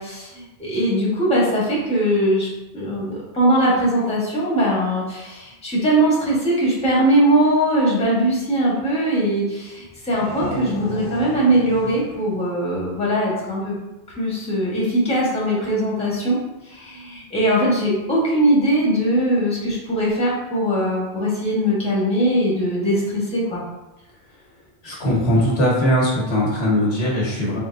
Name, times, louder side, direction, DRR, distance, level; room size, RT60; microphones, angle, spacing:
voice 1, 0.0-2.5 2.7-13.8 14.2-16.4 16.7-23.6, right 1 dB, 5° left, -6 dB, 1.0 m, -20 dB
sound 1, 9.8-13.4, left 1 dB, 35° left, 0.4 m, -34 dB
voice 2, 24.8-27.6, equal, 80° left, -5 dB, 1.4 m, -20 dB
3.6 x 3.3 x 2.5 m, 1.0 s
omnidirectional pair, 1.1 m